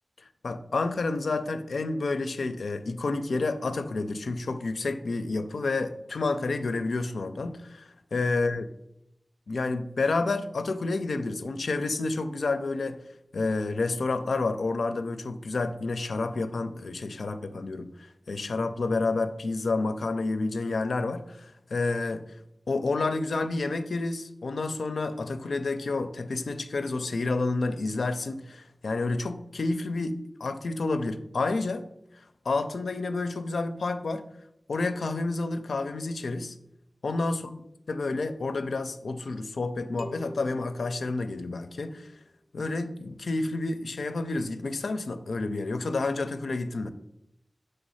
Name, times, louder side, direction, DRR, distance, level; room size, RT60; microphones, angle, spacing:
voice 1, 0.2-8.6 9.5-13.0 13.3-22.2 22.7-31.9 32.4-34.3 34.7-36.6 37.0-37.4 37.9-42.1 42.5-46.9, left 3 dB, 90° left, 0.4 m, -29 dB
sound 1, 40.0-41.9, left 1 dB, 45° right, 0.8 m, -44 dB
6.1 x 3.3 x 5.5 m
wide cardioid pair, 50°, 0 cm